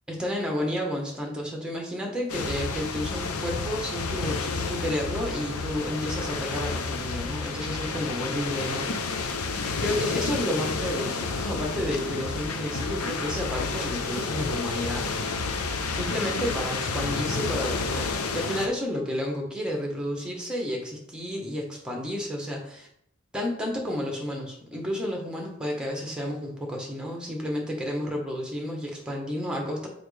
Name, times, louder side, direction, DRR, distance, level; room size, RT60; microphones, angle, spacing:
voice 1, 0.1-9.4 9.8-15.1 15.5-22.9 23.3-29.9, equal, 5° right, 0 dB, 1.3 m, -31 dB
sound 1, 2.3-18.7, left 4 dB, 80° left, 0.7 m, -30 dB
6.1 x 5.0 x 3.4 m, 0.72 s
head